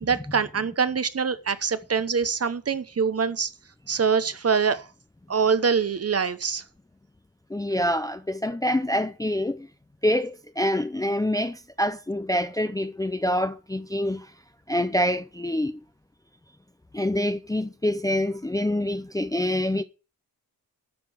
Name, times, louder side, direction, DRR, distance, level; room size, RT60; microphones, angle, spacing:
voice 1, 0.0-3.5 3.9-4.8 5.3-6.6, right 6 dB, 40° right, 0.9 m, -24 dB
voice 2, 7.5-9.7 10.0-14.3 14.7-15.8 16.9-19.8, left 1 dB, 10° left, 0.5 m, -26 dB
12.0 x 6.8 x 6.3 m
wide cardioid pair, 160°, 37 cm